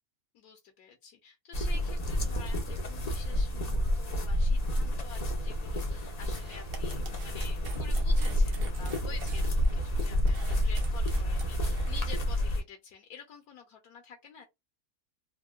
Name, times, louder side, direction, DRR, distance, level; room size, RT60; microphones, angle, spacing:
voice 1, 0.3-14.5, left 6 dB, 75° left, 1.1 m, -49 dB
sound 1, 1.5-12.6, equal, 60° left, 0.4 m, -29 dB
sound 2, 6.3-12.1, right 6 dB, 80° right, 1.4 m, -49 dB
3.5 x 2.1 x 2.3 m
omnidirectional pair, 1.7 m